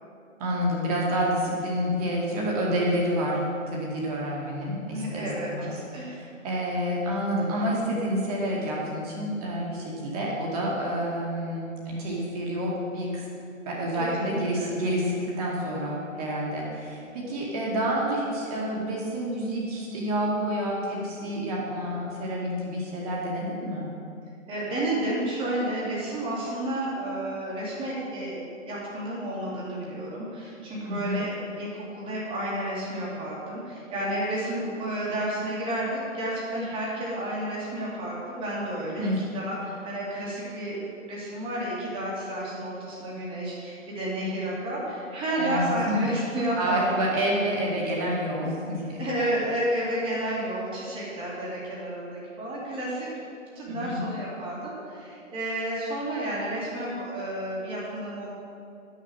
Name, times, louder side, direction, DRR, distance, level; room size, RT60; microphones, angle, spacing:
voice 1, 0.4-5.7 6.0-13.2 13.7-23.9 30.8-31.3 39.0-39.3 45.4-45.9 46.6-49.0 53.7-54.0, equal, 30° right, -4 dB, 2.1 m, -28 dB
voice 2, 4.9-5.5 5.9-6.2 14.0-14.7 24.5-46.9 47.9-48.0 49.0-53.1 53.6-58.3, right 1 dB, 15° right, -6 dB, 2.2 m, -31 dB
11.0 x 6.6 x 6.4 m, 2.6 s
figure-of-eight pair, 145°, 40 cm